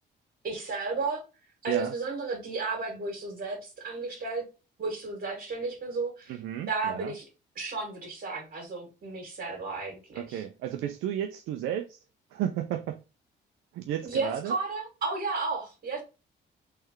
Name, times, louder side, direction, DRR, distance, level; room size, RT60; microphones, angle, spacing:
voice 1, 0.4-1.2 1.6-4.4 4.8-6.4 6.7-7.2 7.6-10.4 14.0-16.0, right 3 dB, 55° right, 2.0 m, -33 dB
voice 2, 6.3-7.1 10.1-12.0 12.3-13.0 13.7-14.6, right 10 dB, 85° right, 0.5 m, -33 dB
3.6 x 3.3 x 3.0 m
cardioid pair, 90°, 20 cm